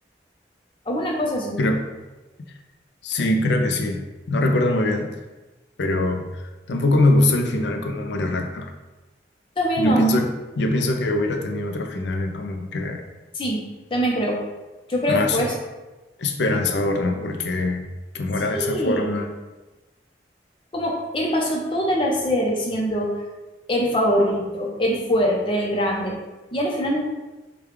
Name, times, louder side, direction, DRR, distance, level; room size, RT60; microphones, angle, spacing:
voice 1, 0.9-1.6 9.6-10.0 13.3-13.6 13.9-14.4 14.9-15.5 18.5-19.3 20.7-23.1 23.7-26.2 26.5-27.0, equal, 30° left, -1 dB, 0.6 m, -23 dB
voice 2, 3.0-5.1 5.8-6.3 6.7-8.7 9.8-13.0 15.1-15.5 16.2-17.9 18.1-19.3, left 1 dB, 75° left, 5 dB, 0.5 m, -22 dB
4.9 x 2.3 x 3.1 m, 1.1 s
head